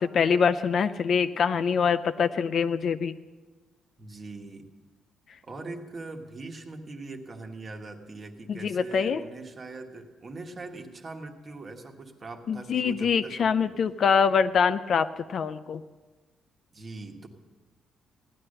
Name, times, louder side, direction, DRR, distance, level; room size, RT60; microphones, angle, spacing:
voice 1, 0.0-3.1 8.5-9.2 12.5-15.8, left 6 dB, 45° left, 11 dB, 0.4 m, -24 dB
voice 2, 4.0-4.6 5.4-13.8 16.7-17.3, right 3 dB, 25° right, 3 dB, 1.3 m, -41 dB
17.0 x 11.5 x 6.6 m, 1.3 s
cardioid pair, 175°, 0 cm